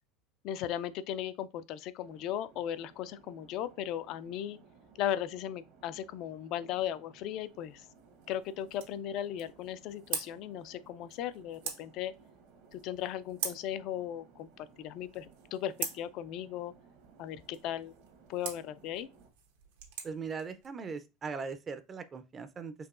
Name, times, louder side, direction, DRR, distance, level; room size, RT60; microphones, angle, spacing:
voice 1, 0.4-4.6 5.0-7.9 8.3-12.1 12.7-16.7 17.2-17.9 18.3-19.1, left 11 dB, 55° left, 0.3 m, -37 dB
sound 1, 2.0-19.3, right 5 dB, 65° right, 1.0 m, -60 dB
sound 2, 7.3-20.7, right 7 dB, 90° right, 1.0 m, -45 dB
voice 2, 20.0-22.7, right 5 dB, 25° right, 0.4 m, -39 dB
4.7 x 2.9 x 2.4 m
supercardioid pair, 120°, 0 cm